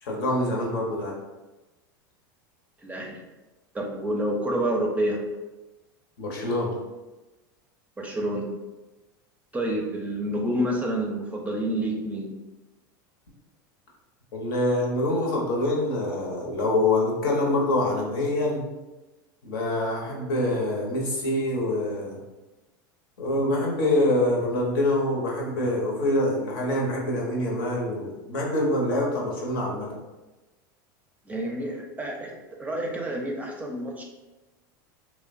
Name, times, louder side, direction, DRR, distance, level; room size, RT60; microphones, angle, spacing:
voice 1, 0.0-1.1 6.2-6.7 14.3-18.6 19.4-22.2 23.2-29.9, left 1 dB, 75° left, -2 dB, 0.8 m, -25 dB
voice 2, 2.8-3.2 3.7-5.2 8.0-8.5 9.5-12.3 31.3-32.3 32.6-34.0, right 1 dB, 15° right, 0 dB, 0.5 m, -28 dB
2.9 x 2.1 x 2.5 m, 1.1 s
hypercardioid pair, 95°, 11 cm